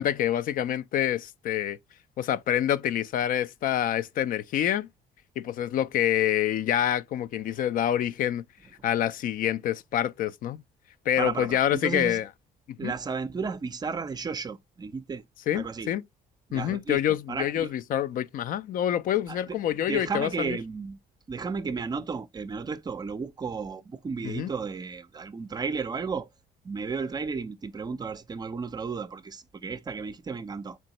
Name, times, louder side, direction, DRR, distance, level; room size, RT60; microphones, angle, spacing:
voice 1, 0.0-1.8 2.2-4.9 5.4-8.4 8.8-10.6 11.1-12.3 12.7-12.9 15.5-16.0 16.5-20.6 24.2-24.5, left 11 dB, 55° left, 0.4 m, -27 dB
voice 2, 11.2-12.2 12.8-15.2 15.5-15.9 16.5-17.0 17.3-17.7 19.3-19.4 19.9-21.0 21.3-26.3 26.6-30.8, right 5 dB, 25° right, 0.5 m, -33 dB
4.4 x 3.0 x 2.8 m
cardioid pair, 110°, 17 cm